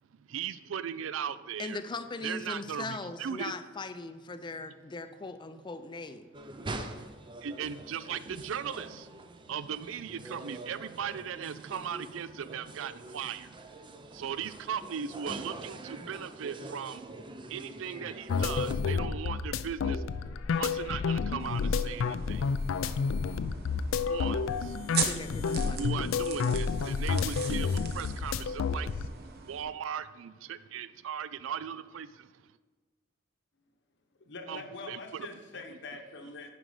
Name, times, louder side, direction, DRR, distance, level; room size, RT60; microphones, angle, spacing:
voice 1, 0.2-1.8 2.2-3.5 7.4-17.0 17.4-22.5 24.1-24.9 25.8-32.5 34.5-35.3, right 7 dB, 75° right, 15 dB, 0.4 m, -38 dB
voice 2, 1.6-6.3 25.0-25.9, left 3 dB, 25° left, 10 dB, 0.4 m, -39 dB
sound 1, 6.3-18.7, right 2 dB, 25° right, 0.5 m, -44 dB
sound 2, 18.3-29.1, left 5 dB, 90° left, 0.4 m, -30 dB
sound 3, 21.4-29.6, right 6 dB, 55° right, 0.9 m, -40 dB
voice 3, 34.2-36.5, left 3 dB, 65° left, 5 dB, 1.0 m, -44 dB
9.9 x 5.2 x 4.8 m, 1.4 s
head